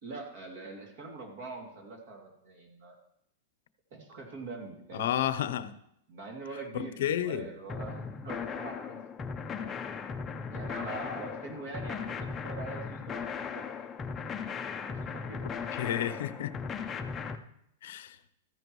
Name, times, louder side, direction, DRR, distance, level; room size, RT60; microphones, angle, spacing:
voice 1, 0.0-3.0 3.9-5.1 6.1-9.7 10.5-13.6 14.9-15.6, right 3 dB, 50° right, 1 dB, 2.7 m, -43 dB
voice 2, 4.9-5.8 6.7-7.5 15.7-16.5 17.8-18.2, left 11 dB, 65° left, 14 dB, 0.7 m, -31 dB
sound 1, 7.7-17.4, left 5 dB, 15° left, 0.6 m, -37 dB
14.0 x 10.5 x 3.1 m, 0.76 s
supercardioid pair, 160°, 0 cm